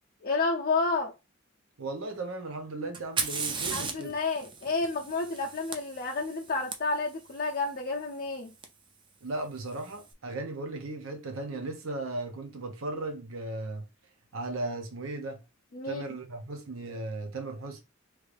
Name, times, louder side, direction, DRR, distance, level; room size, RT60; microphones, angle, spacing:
voice 1, 0.2-1.1 3.7-8.5 15.7-16.0, left 3 dB, 45° left, 0.5 m, -30 dB
voice 2, 1.8-4.1 9.2-13.8 14.3-15.4 15.9-17.8, right 2 dB, 80° right, 0.7 m, -36 dB
Fire, 2.9-6.7 8.6-8.7 9.6-10.0, right 5 dB, 25° right, 0.4 m, -36 dB
3.2 x 2.4 x 3.2 m
head